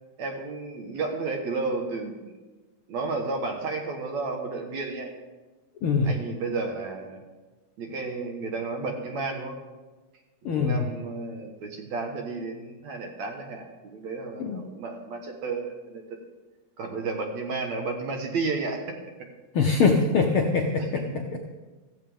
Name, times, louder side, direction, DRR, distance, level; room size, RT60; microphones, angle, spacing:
voice 1, 0.2-2.3 2.9-5.1 6.0-7.2 7.8-9.6 10.5-16.0 16.8-18.8 21.1-21.2, right 3 dB, 65° right, 3 dB, 2.6 m, -32 dB
voice 2, 5.8-6.1 10.4-10.9 14.4-14.6 19.5-21.5, left 4 dB, 70° left, 3 dB, 1.3 m, -23 dB
15.5 x 15.0 x 3.6 m, 1.2 s
omnidirectional pair, 3.5 m